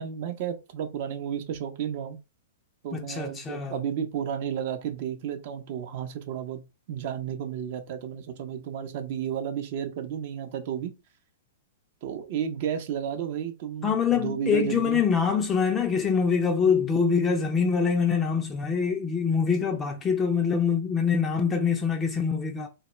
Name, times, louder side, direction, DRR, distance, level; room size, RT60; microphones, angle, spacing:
voice 1, 0.0-2.2 2.8-6.6 6.9-10.9 12.0-15.0, right 8 dB, 55° right, 0.5 m, -32 dB
voice 2, 2.9-3.8 13.8-22.7, left 6 dB, 20° left, 0.4 m, -24 dB
2.2 x 2.1 x 3.0 m
hypercardioid pair, 110°, 0 cm